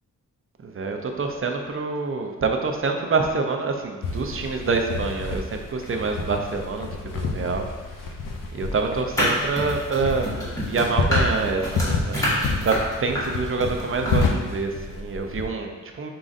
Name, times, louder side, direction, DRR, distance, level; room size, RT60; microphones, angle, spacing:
voice 1, 0.6-7.7 8.5-16.1, right 4 dB, 40° right, 3 dB, 0.5 m, -26 dB
sound 1, 4.0-15.5, left 3 dB, 80° left, 0.6 m, -29 dB
sound 2, 9.1-14.2, left 1 dB, 10° left, 1.4 m, -27 dB
4.9 x 3.8 x 2.5 m, 1.3 s
wide cardioid pair, 110°, 32 cm